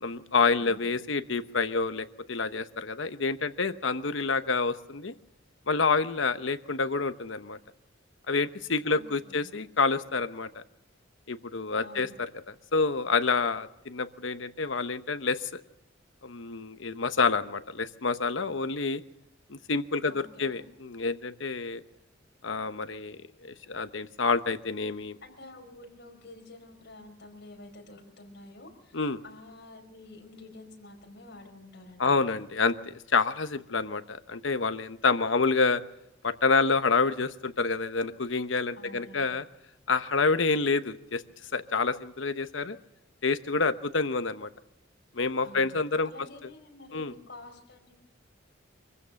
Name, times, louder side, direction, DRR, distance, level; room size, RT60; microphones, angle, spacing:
voice 1, 0.0-5.1 5.7-7.6 8.3-10.6 11.3-15.6 16.2-19.0 19.5-21.8 22.4-25.2 28.9-29.2 32.0-35.8 36.2-39.4 39.9-41.2 41.5-42.8 43.2-44.5 45.1-46.1 46.9-47.1, left 4 dB, 75° left, 10 dB, 1.0 m, -28 dB
voice 2, 0.6-0.9 8.8-9.5 11.8-12.2 20.1-20.6 25.2-32.4 38.7-39.4 45.4-45.7 46.0-47.9, left 2 dB, 60° left, 2 dB, 5.0 m, -49 dB
25.0 x 15.5 x 7.0 m, 0.86 s
head